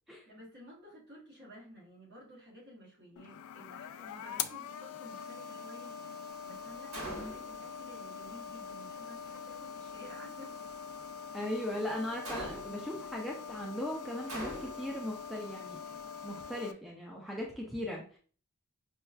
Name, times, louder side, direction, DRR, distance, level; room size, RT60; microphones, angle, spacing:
voice 1, 0.3-10.5, equal, 50° right, -4 dB, 1.5 m, -53 dB
sound 1, 3.2-16.7, left 7 dB, 80° left, 0.3 m, -43 dB
Gunshot gunfire, 6.9-7.6 12.2-12.9 14.3-15.0, right 1 dB, 75° right, 1.5 m, -41 dB
voice 2, 7.0-7.3 11.3-18.2, left 1 dB, ahead, -2 dB, 0.5 m, -39 dB
5.3 x 2.4 x 2.3 m, 0.41 s
head